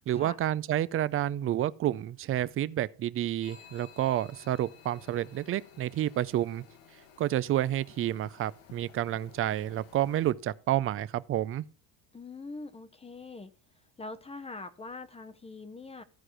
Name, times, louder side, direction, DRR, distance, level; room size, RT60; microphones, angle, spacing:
voice 1, 0.0-6.6 7.2-11.6, right 12 dB, 30° right, 0.4 m, -29 dB
sound 1, 3.4-10.3, left 8 dB, 70° left, 1.7 m, -54 dB
voice 2, 12.1-13.5 14.0-16.0, left 3 dB, 15° left, 0.7 m, -43 dB
13.5 x 4.8 x 6.1 m
supercardioid pair, 115°, 48 cm